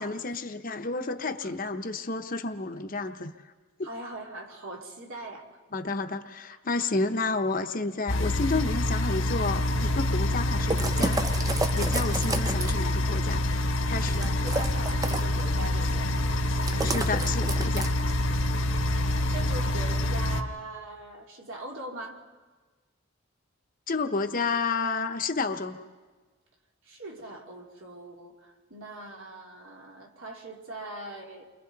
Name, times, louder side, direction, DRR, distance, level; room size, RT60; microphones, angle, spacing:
voice 1, 0.0-3.3 5.7-11.2 11.8-13.4 13.9-14.2 16.8-17.9 23.9-25.8, left 3 dB, 40° left, 6 dB, 0.9 m, -30 dB
voice 2, 3.8-5.6 14.2-16.1 16.7-17.3 19.3-22.2 26.8-31.4, right 2 dB, 70° right, 0 dB, 2.7 m, -41 dB
sound 1, 8.1-20.4, left 1 dB, 65° left, 1.2 m, -26 dB
sound 2, 10.7-12.9 14.1-15.4 16.6-18.1, right 2 dB, 15° right, 0.6 m, -31 dB
30.0 x 24.0 x 4.0 m, 1.3 s
head